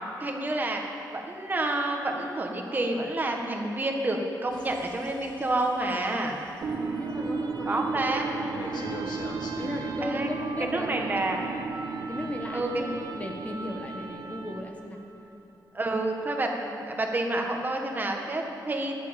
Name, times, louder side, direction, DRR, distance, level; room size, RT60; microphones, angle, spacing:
voice 1, 0.2-0.8 1.1-6.4 7.7-8.3 10.0-10.3 10.6-11.4 12.5-12.8 15.7-19.0, right 2 dB, 25° right, 2 dB, 1.6 m, -29 dB
sound 1, 4.5-6.6 8.5-10.0, left 3 dB, 80° left, 1.9 m, -42 dB
sound 2, 6.6-14.8, right 4 dB, 60° right, 1.3 m, -34 dB
voice 2, 6.8-9.0 9.6-11.7 12.1-15.0, left 1 dB, 20° left, 2 dB, 1.3 m, -37 dB
14.0 x 11.5 x 8.9 m, 2.9 s
wide cardioid pair, 155°, 7 cm